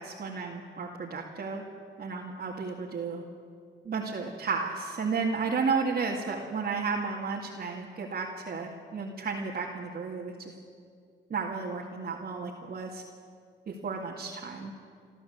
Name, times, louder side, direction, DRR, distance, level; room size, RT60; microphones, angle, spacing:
voice 1, 0.0-1.6 2.0-3.2 3.8-10.3 11.3-13.0 13.7-14.7, right 4 dB, 50° right, -3 dB, 2.4 m, -33 dB
29.0 x 13.0 x 8.1 m, 2.3 s
cardioid pair, 90°, 20 cm